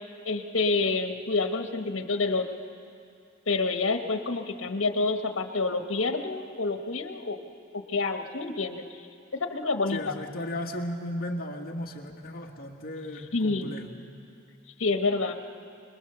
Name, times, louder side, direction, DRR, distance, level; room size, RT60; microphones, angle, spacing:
voice 1, 0.2-2.4 3.5-7.4 7.9-8.8 9.5-10.1 13.3-13.7 14.8-15.3, left 3 dB, 85° left, 5 dB, 1.3 m, -28 dB
voice 2, 9.9-13.9, left 1 dB, 50° left, 2 dB, 1.8 m, -35 dB
26.5 x 21.0 x 6.9 m, 2.5 s
head